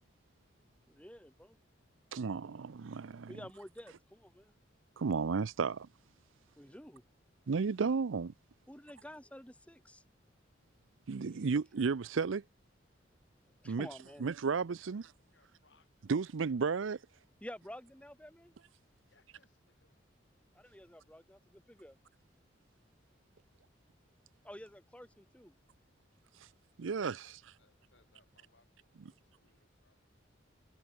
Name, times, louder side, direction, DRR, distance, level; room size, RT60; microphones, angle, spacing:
voice 1, 0.9-1.6 3.3-4.5 6.6-7.0 8.7-10.0 13.6-14.3 17.4-18.5 20.5-22.0 24.4-25.5, equal, 5° left, 4.0 m, -50 dB
voice 2, 2.1-3.3 5.0-5.9 7.5-8.3 11.1-12.4 13.6-13.9 14.2-15.1 16.1-17.0 26.8-27.4 29.0-29.1, right 5 dB, 90° right, 0.5 m, -33 dB
voice 3, 15.3-16.1 19.1-19.9 26.8-30.1, left 3 dB, 70° left, 5.9 m, -71 dB
head